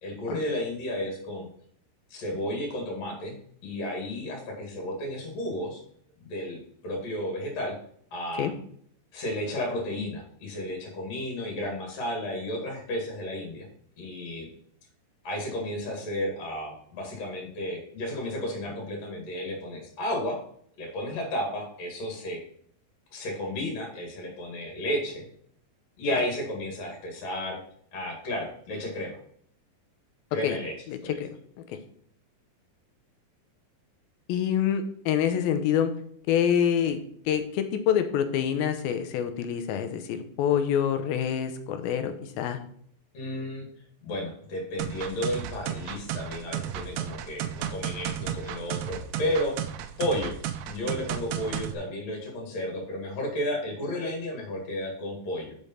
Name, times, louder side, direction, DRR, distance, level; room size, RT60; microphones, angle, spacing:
voice 1, 0.0-1.5 2.1-3.3 3.6-5.8 6.3-7.8 8.1-8.5 9.1-13.7 14.0-14.5 15.2-20.4 20.8-22.4 23.1-25.3 26.0-27.6 27.9-29.2 30.3-30.7 43.1-43.7 44.0-49.6 50.0-50.3 50.7-55.6, left 1 dB, 50° left, 0 dB, 3.0 m, -32 dB
voice 2, 30.9-31.3 31.7-31.8 34.3-35.9 36.3-37.0 37.3-42.6, left 9 dB, 80° left, 8 dB, 2.6 m, -26 dB
sound 1, 44.8-51.7, right 10 dB, 80° right, 2.4 m, -33 dB
6.1 x 5.3 x 5.6 m, 0.63 s
omnidirectional pair, 4.3 m